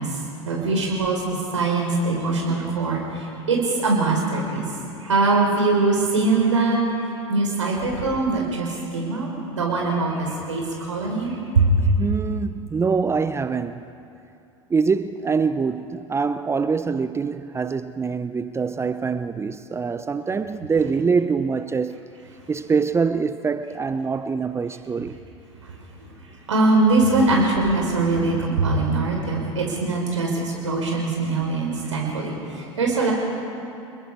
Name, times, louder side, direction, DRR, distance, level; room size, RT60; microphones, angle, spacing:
voice 1, 0.0-4.6 5.0-6.8 7.3-11.9 25.6-25.7 26.1-33.1, right 3 dB, 80° right, 4.5 m, -22 dB
voice 2, 12.0-13.8 14.7-21.9 22.5-25.2, right 5 dB, 15° right, 0.7 m, -24 dB
29.0 x 21.5 x 4.8 m
figure-of-eight pair, 85°, 15 cm